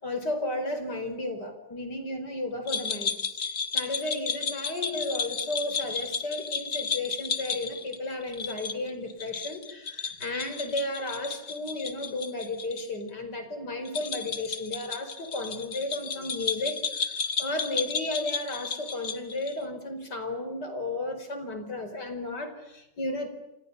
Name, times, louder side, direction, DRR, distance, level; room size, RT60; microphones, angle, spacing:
voice 1, 0.0-23.3, left 2 dB, 70° left, 8 dB, 5.4 m, -34 dB
sound 1, 2.7-12.8 13.1-13.2 13.8-19.6, left 5 dB, 45° left, 1.9 m, -33 dB
28.5 x 28.5 x 6.9 m, 0.93 s
omnidirectional pair, 1.9 m